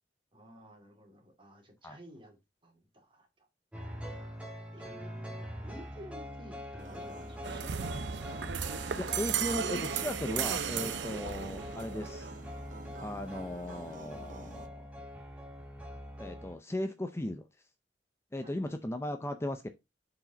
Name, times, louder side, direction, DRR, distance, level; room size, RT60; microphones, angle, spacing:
voice 1, 0.3-3.5 4.7-8.5 18.4-18.6, equal, 30° right, 2.5 m, -53 dB
sound 1, 3.7-16.5, equal, 5° right, 1.8 m, -44 dB
sound 2, 6.8-14.7, right 3 dB, 45° right, 0.7 m, -50 dB
sound 3, 7.4-12.4, right 7 dB, 85° right, 0.6 m, -35 dB
voice 2, 9.0-12.3 13.0-14.9 16.2-17.4 18.3-19.7, left 1 dB, 15° left, 0.5 m, -37 dB
7.3 x 4.9 x 3.9 m
head